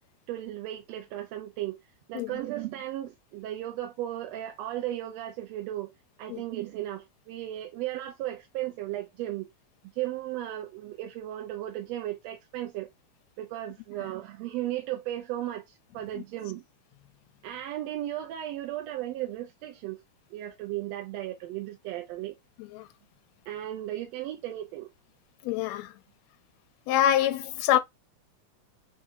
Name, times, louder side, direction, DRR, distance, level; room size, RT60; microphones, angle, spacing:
voice 1, 0.3-1.8 2.1-5.9 6.2-9.5 9.9-12.9 13.4-16.6 17.4-20.0 20.3-22.4 23.5-24.9, right 13 dB, 75° right, 1.6 m, -35 dB
voice 2, 25.4-25.9 26.9-27.8, left 11 dB, 75° left, 1.7 m, -25 dB
4.4 x 3.9 x 2.5 m
omnidirectional pair, 3.4 m